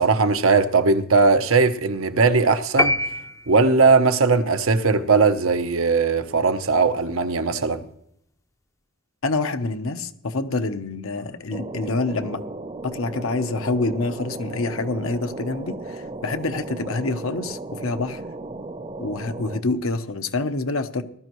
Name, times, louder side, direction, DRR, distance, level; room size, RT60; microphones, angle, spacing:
voice 1, 0.0-3.0 3.5-7.8, right 4 dB, 85° right, 0.8 m, -19 dB
sound 1, 2.8-4.0, left 1 dB, 15° left, 0.5 m, -24 dB
voice 2, 9.2-12.4 12.8-18.2 19.0-21.0, left 3 dB, 85° left, 0.9 m, -27 dB
sound 2, 11.5-19.6, right 2 dB, 30° right, 0.7 m, -35 dB
19.5 x 12.5 x 3.1 m
head